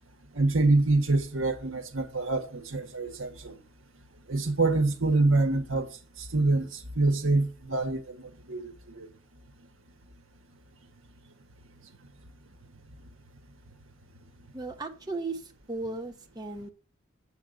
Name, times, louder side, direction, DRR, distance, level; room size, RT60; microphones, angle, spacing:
voice 1, 0.3-3.6 4.3-5.9 6.2-8.7 9.0-9.1, right 2 dB, 75° right, 1.4 m, -26 dB
voice 2, 14.5-16.7, right 3 dB, 20° right, 1.0 m, -36 dB
7.9 x 5.7 x 7.9 m
head